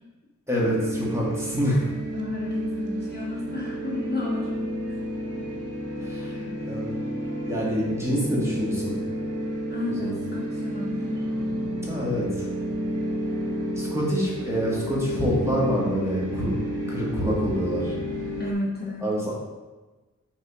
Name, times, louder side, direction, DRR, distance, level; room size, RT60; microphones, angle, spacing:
voice 1, 0.5-1.9 6.0-7.1 7.5-8.9 10.0-10.2 11.9-12.5 13.8-16.5 16.9-18.0 19.0-19.3, equal, 10° right, -5 dB, 2.1 m, -26 dB
sound 1, 0.6-18.5, equal, 50° right, 1.1 m, -31 dB
voice 2, 2.1-4.7 5.3-5.4 9.7-11.2 18.4-19.1, left 2 dB, 30° left, -4 dB, 1.3 m, -32 dB
7.1 x 4.1 x 5.1 m, 1.2 s
wide cardioid pair, 120°, 31 cm